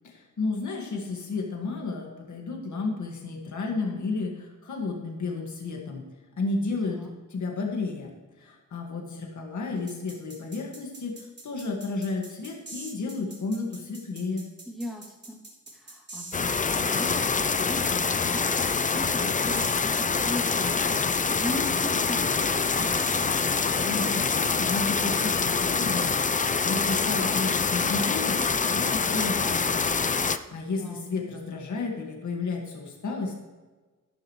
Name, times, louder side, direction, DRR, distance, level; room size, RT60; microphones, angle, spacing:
voice 1, 0.0-6.0 6.4-8.1 8.4-14.5 23.6-30.2 30.5-33.3, left 3 dB, 65° left, 0 dB, 1.9 m, -32 dB
sound 1, 9.9-26.2, right 2 dB, 35° right, 3.4 m, -44 dB
voice 2, 14.7-15.4 15.7-23.1 30.8-31.0, equal, ahead, -2 dB, 2.6 m, -39 dB
sound 2, 16.3-30.4, left 5 dB, 25° left, 0.5 m, -25 dB
12.0 x 11.5 x 3.2 m, 1.3 s
wide cardioid pair, 130°, 32 cm